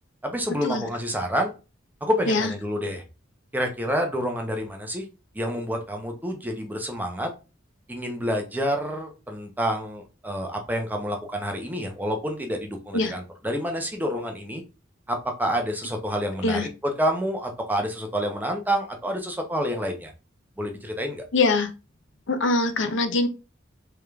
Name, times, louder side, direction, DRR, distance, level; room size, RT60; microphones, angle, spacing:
voice 1, 0.2-1.5 2.0-3.0 3.5-5.0 5.3-7.3 7.9-14.6 15.1-16.7 17.0-20.1 20.6-21.2, equal, 10° right, 0.8 m, -28 dB
voice 2, 21.3-21.7 22.3-23.3, left 3 dB, 70° left, 0.8 m, -23 dB
3.7 x 3.3 x 3.4 m
head